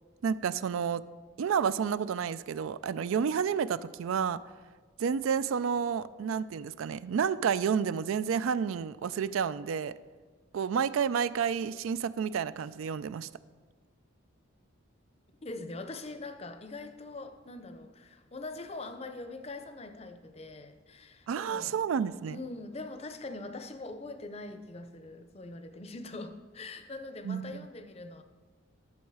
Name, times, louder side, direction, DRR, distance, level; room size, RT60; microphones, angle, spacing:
voice 1, 0.2-1.0 1.4-4.4 5.0-9.9 10.5-13.3 21.3-22.4 27.2-27.5, right 7 dB, 85° right, 0.3 m, -30 dB
voice 2, 15.4-21.9 22.3-28.2, left 2 dB, 30° left, 0.6 m, -43 dB
11.5 x 7.2 x 4.8 m
head